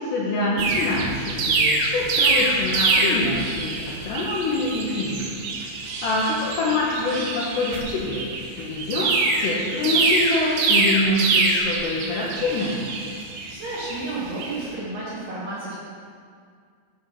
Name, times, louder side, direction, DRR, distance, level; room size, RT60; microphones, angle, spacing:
voice 1, 0.0-5.4 6.0-8.2 8.6-9.1 9.4-12.8, left 2 dB, 80° left, -5 dB, 2.6 m, -25 dB
sound 1, 0.6-14.6, right 3 dB, 85° right, 2.3 m, -24 dB
voice 2, 13.5-15.7, right 2 dB, 60° right, -9 dB, 2.5 m, -31 dB
11.5 x 4.0 x 5.6 m, 2.1 s
omnidirectional pair, 5.8 m